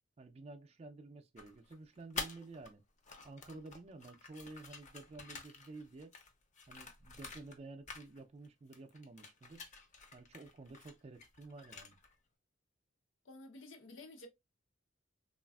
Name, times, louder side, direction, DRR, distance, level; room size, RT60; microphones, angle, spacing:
voice 1, 0.2-2.8 3.2-6.1 6.7-9.6 10.1-12.0, right 3 dB, 35° right, 0.4 m, -52 dB
sound 1, 1.4-2.7 3.0-7.6 7.9-8.5 8.7-12.2, left 4 dB, 40° left, 0.6 m, -49 dB
voice 2, 13.3-14.3, left 2 dB, 90° left, 0.7 m, -52 dB
3.2 x 2.4 x 2.2 m
head